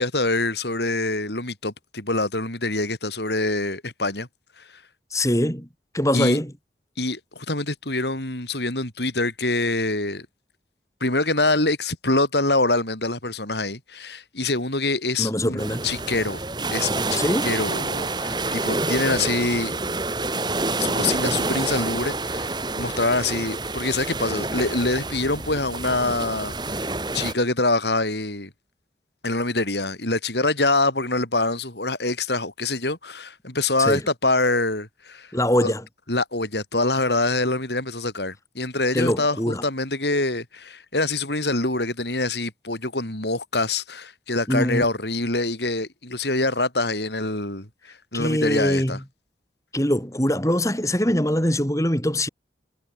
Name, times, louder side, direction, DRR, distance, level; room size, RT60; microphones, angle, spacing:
voice 1, 0.0-4.3 4.6-4.7 6.1-6.4 7.0-10.3 11.0-16.4 16.7-19.8 20.8-28.5 29.2-35.3 35.6-35.7 36.1-49.0, left 2 dB, 75° left, 6.9 m, -25 dB
voice 2, 5.1-5.7 5.9-6.5 15.2-15.9 17.2-17.6 33.8-34.0 35.3-35.8 38.9-39.6 44.5-44.8 48.1-49.0 49.7-52.3, equal, 15° left, 5.8 m, -23 dB
sound 1, 15.6-27.3, right 2 dB, 25° right, 3.3 m, -28 dB
head